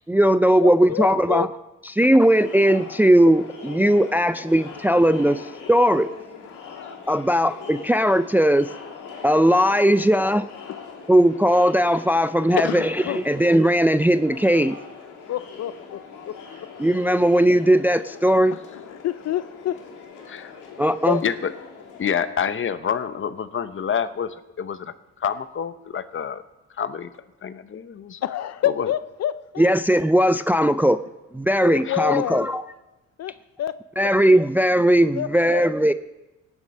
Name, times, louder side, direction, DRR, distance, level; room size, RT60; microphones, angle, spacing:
voice 1, 0.1-1.5 2.0-5.4 5.7-6.1 7.1-8.7 9.2-10.5 11.1-14.8 16.8-18.6 20.8-21.2 29.6-31.0 31.3-32.6 34.0-35.9, equal, 5° right, 13 dB, 0.4 m, -18 dB
voice 2, 0.6-1.5 9.9-10.1 12.6-13.2 15.3-16.3 18.5-19.8 21.1-21.2 28.2-29.7 31.5-32.5 33.2-33.3 33.6-33.7 34.0-34.1 35.1-35.6, left 12 dB, 60° left, 15 dB, 0.5 m, -28 dB
Crowd, 2.2-22.1, left 5 dB, 85° left, 2.9 m, -41 dB
voice 3, 22.0-24.9 25.2-26.4 26.8-27.1 27.4-28.2 28.8-28.9 31.8-32.0, left 7 dB, 40° left, 13 dB, 0.9 m, -27 dB
18.0 x 7.3 x 5.5 m, 1.0 s
cardioid pair, 90°, 30 cm